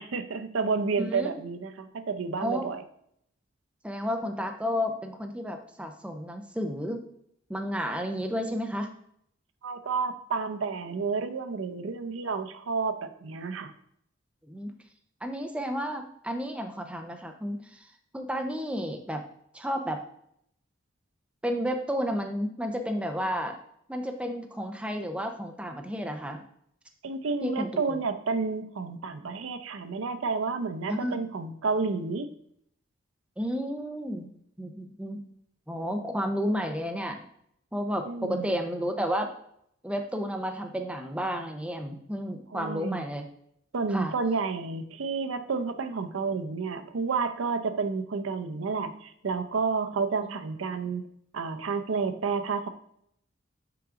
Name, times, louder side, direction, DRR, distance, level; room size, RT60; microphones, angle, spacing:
voice 1, 0.0-2.8 9.6-13.7 27.0-32.3 38.1-38.6 42.5-43.0 43.7-51.1 51.3-52.7, right 4 dB, 80° right, 10 dB, 0.5 m, -30 dB
voice 2, 1.0-1.4 2.4-2.7 3.8-7.0 7.5-8.9 14.5-14.7 15.2-17.9 18.1-19.2 19.5-20.0 21.4-23.6 23.9-26.4 27.4-27.8 30.9-31.1 33.4-34.3 34.6-35.2 35.7-37.2 37.7-39.3 39.8-43.3 43.9-44.1, equal, 5° right, 4 dB, 0.5 m, -32 dB
5.9 x 4.9 x 3.7 m, 0.70 s
head